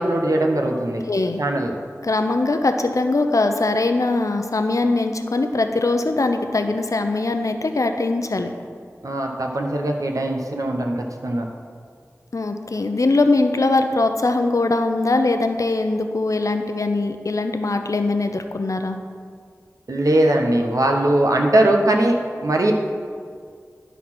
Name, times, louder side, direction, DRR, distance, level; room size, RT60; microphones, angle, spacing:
voice 1, 0.0-1.0 1.4-1.8 9.0-11.5 19.9-22.7, right 1 dB, 75° right, 2 dB, 0.9 m, -20 dB
voice 2, 1.1-1.4 2.0-8.5 12.3-19.0, left 2 dB, 65° left, 6 dB, 0.6 m, -21 dB
11.5 x 4.0 x 6.0 m, 2.1 s
wide cardioid pair, 50°, 6 cm